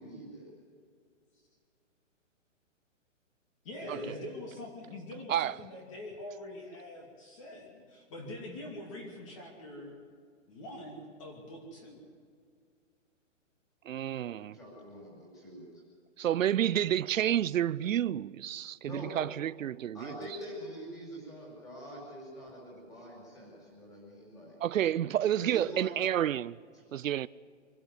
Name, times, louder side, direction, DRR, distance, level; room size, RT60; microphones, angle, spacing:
voice 1, 0.0-0.5 3.8-4.3 14.5-15.8 18.8-19.3 19.9-24.6 25.4-25.9 26.7-26.8, equal, 10° left, 5.3 m, -44 dB
voice 2, 3.6-10.0 10.5-12.0, left 1 dB, 25° left, 2.6 m, -44 dB
voice 3, 13.9-14.6 16.2-20.0 24.6-26.6 26.9-27.3, right 11 dB, 85° right, 0.6 m, -29 dB
24.5 x 12.0 x 9.6 m
hypercardioid pair, 175°, 38 cm